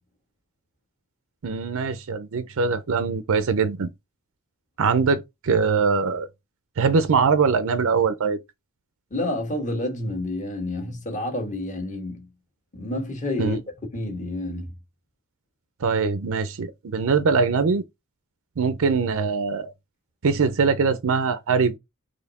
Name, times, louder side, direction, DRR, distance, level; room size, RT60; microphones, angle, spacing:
voice 1, 1.4-3.9 4.8-6.3 6.8-8.4 13.4-13.6 15.8-17.8 18.6-19.7 20.2-21.8, right 5 dB, 65° right, 0.5 m, -22 dB
voice 2, 9.1-12.3 12.7-13.6 13.9-14.7, left 1 dB, 35° left, 1.4 m, -29 dB
4.1 x 3.1 x 4.1 m
head